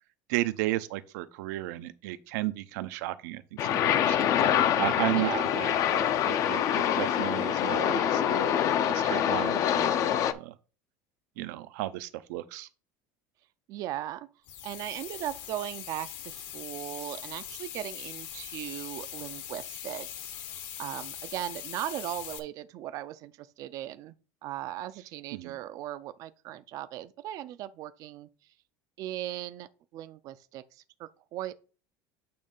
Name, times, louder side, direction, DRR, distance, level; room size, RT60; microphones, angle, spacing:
voice 1, 0.3-8.5 8.9-10.5 11.4-12.7 25.3-25.5, right 16 dB, 80° right, 0.7 m, -34 dB
sound 1, 3.6-10.3, left 9 dB, 35° left, 0.5 m, -25 dB
voice 2, 5.1-5.5 13.7-14.3 14.6-24.1 24.4-28.3 29.0-29.7 29.9-31.5, right 13 dB, 40° right, 0.4 m, -38 dB
sound 2, 14.5-22.4, left 10 dB, 55° left, 1.0 m, -41 dB
8.6 x 3.2 x 5.3 m
cardioid pair, 175°, 9 cm